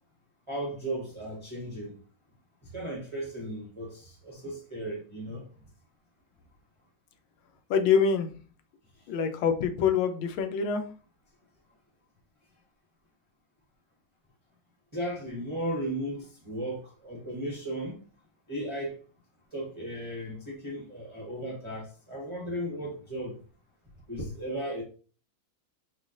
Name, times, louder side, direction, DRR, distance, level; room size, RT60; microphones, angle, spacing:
voice 1, 0.5-1.9 2.7-5.4 14.9-18.0 18.5-18.9 19.5-23.4 24.1-24.8, right 1 dB, 35° right, 0.4 m, -35 dB
voice 2, 7.7-8.3 9.1-10.9, left 6 dB, 85° left, 1.4 m, -25 dB
5.0 x 2.3 x 2.4 m
omnidirectional pair, 2.3 m